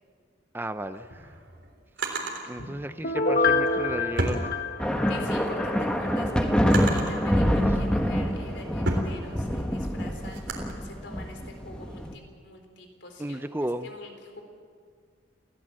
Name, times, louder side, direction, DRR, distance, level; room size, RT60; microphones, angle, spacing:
voice 1, 0.5-1.3 2.4-4.5 13.2-13.9, right 1 dB, 10° right, 11 dB, 0.5 m, -33 dB
Drawer open or close, 0.8-2.4 3.5-5.1 5.6-7.2 7.9-10.7, right 2 dB, 75° right, 3.6 m, -34 dB
Piano, 3.0-5.7 6.1-6.2, left 3 dB, 50° left, 1.4 m, -26 dB
sound 1, 4.8-12.1, equal, 5° left, 1.5 m, -26 dB
voice 2, 5.1-14.4, left 2 dB, 70° left, 4 dB, 4.0 m, -45 dB
28.0 x 16.5 x 7.6 m, 2.1 s
head